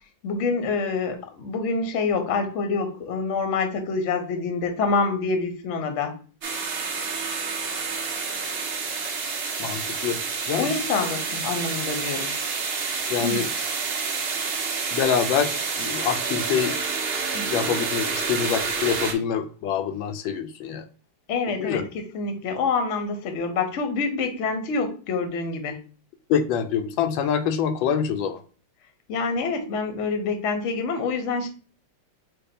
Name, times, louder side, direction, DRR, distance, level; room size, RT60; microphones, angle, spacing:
voice 1, 0.2-6.1 10.6-12.3 13.2-13.4 17.3-17.5 21.3-25.8 29.1-31.5, left 4 dB, 55° left, 6 dB, 0.9 m, -26 dB
sound 1, 6.4-19.1, right 5 dB, 75° right, 0.5 m, -28 dB
voice 2, 9.6-10.8 13.1-13.5 14.9-16.8 17.5-20.8 21.6-21.9 26.3-28.4, left 8 dB, 85° left, 8 dB, 1.3 m, -25 dB
5.2 x 2.1 x 4.1 m, 0.38 s
omnidirectional pair, 2.1 m